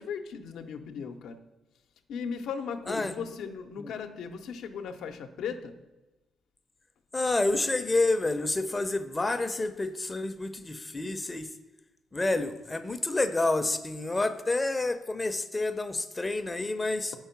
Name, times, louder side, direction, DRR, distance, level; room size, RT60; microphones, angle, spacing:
voice 1, 0.0-1.4 2.1-5.8, left 6 dB, 75° left, 8 dB, 0.6 m, -37 dB
voice 2, 7.1-11.5 12.1-17.1, left 2 dB, 20° left, 10 dB, 0.5 m, -29 dB
5.2 x 4.7 x 5.7 m, 1.0 s
cardioid pair, 90°, 0 cm